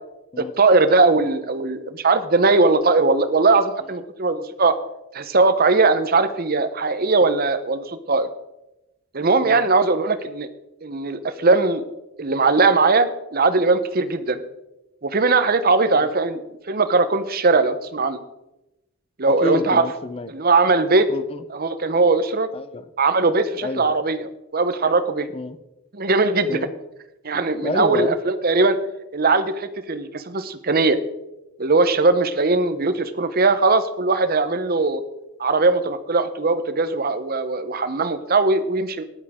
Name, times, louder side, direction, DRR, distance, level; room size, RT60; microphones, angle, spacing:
voice 1, 0.4-4.8 5.1-8.3 9.1-10.5 10.8-11.8 12.2-14.4 15.0-16.4 16.7-18.2 19.2-19.9 20.3-21.1 21.5-22.5 23.0-25.3 25.9-26.6 27.2-28.8 29.1-31.0 31.6-35.0 35.4-39.0, right 3 dB, 40° right, 11 dB, 0.8 m, -19 dB
voice 2, 19.3-20.3 21.1-21.4 22.5-22.8 23.6-23.9 25.3-25.6 26.5-26.7 27.6-28.2, left 2 dB, 25° left, 13 dB, 0.6 m, -29 dB
13.5 x 11.0 x 3.6 m, 0.94 s
head